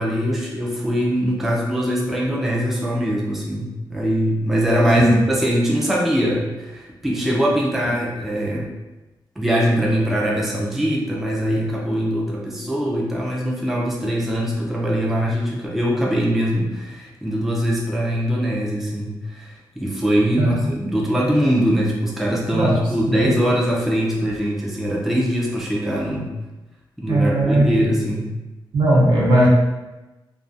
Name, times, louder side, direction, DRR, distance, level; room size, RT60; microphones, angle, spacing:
voice 1, 0.0-8.7 9.4-26.3 27.0-28.3, equal, 5° right, -3 dB, 0.3 m, -22 dB
voice 2, 27.1-28.0 28.7-29.5, right 1 dB, 75° right, -4 dB, 0.7 m, -18 dB
2.3 x 2.3 x 2.5 m, 1.1 s
wide cardioid pair, 150°, 8 cm